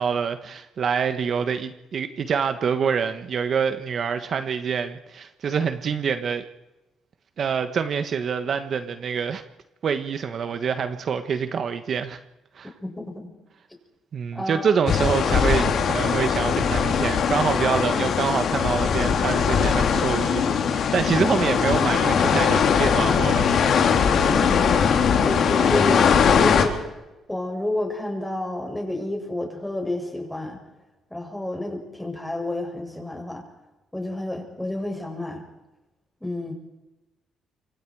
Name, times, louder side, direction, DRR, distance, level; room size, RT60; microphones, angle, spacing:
voice 1, 0.0-6.4 7.4-9.4 9.8-12.2 12.5-12.7 14.1-23.6 25.1-25.2, right 6 dB, 55° right, 9 dB, 1.4 m, -26 dB
voice 2, 12.8-13.3 14.3-14.7 24.1-26.8 27.3-30.6 31.1-33.4 33.9-35.4 36.2-36.5, left 1 dB, 5° left, 1 dB, 7.6 m, -30 dB
sound 1, 14.9-26.6, left 6 dB, 65° left, 3.3 m, -20 dB
26.5 x 24.5 x 4.9 m, 1.0 s
cardioid pair, 90°, 0 cm